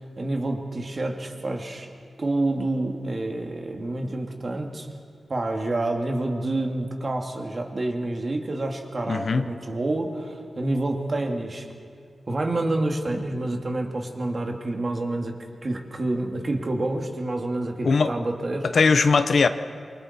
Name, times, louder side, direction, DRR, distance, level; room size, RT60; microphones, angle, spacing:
voice 1, 0.2-1.9 2.2-4.9 5.3-11.7 12.3-15.3 15.6-18.7, right 2 dB, 40° right, 2 dB, 2.2 m, -28 dB
voice 2, 9.1-9.5 17.8-18.1 18.7-19.5, left 4 dB, 60° left, 10 dB, 0.8 m, -19 dB
27.5 x 24.5 x 4.3 m, 2.1 s
wide cardioid pair, 110°, 0 cm